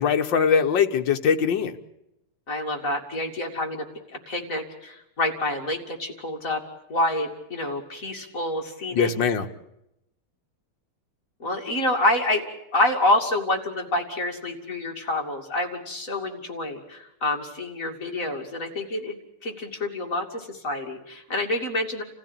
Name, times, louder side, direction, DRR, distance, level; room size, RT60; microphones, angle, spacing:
voice 1, 0.0-1.8 8.9-9.5, left 6 dB, 60° left, 6 dB, 1.8 m, -21 dB
voice 2, 2.5-6.6 6.9-9.1 11.4-12.4 12.7-19.2 19.4-22.0, left 1 dB, 35° left, 2 dB, 3.0 m, -27 dB
28.5 x 15.5 x 8.9 m, 0.85 s
omnidirectional pair, 2.4 m